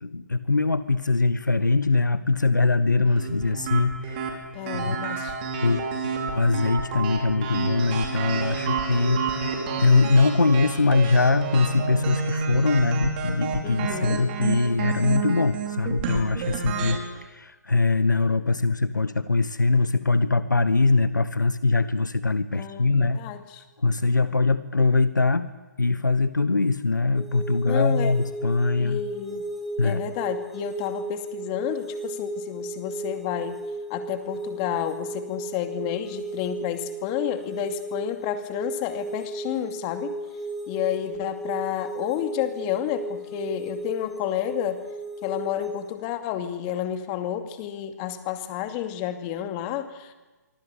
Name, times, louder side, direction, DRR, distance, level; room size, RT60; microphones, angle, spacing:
voice 1, 0.0-4.4 4.7-5.0 5.6-23.2 23.8-25.5 25.8-29.1 29.8-30.0, left 3 dB, 90° left, 13 dB, 1.3 m, -22 dB
sound 1, 3.2-17.0, right 5 dB, 35° right, 5.5 m, -30 dB
voice 2, 4.5-5.4 13.6-14.3 22.5-23.6 27.7-28.1 28.8-29.5 29.8-33.6 33.9-40.1 40.7-44.8 45.2-50.1, left 11 dB, 30° left, 8 dB, 2.4 m, -30 dB
sound 2, 27.2-46.0, right 2 dB, ahead, 4.2 m, -35 dB
26.0 x 24.5 x 8.3 m, 1.2 s
figure-of-eight pair, 135°, 10 cm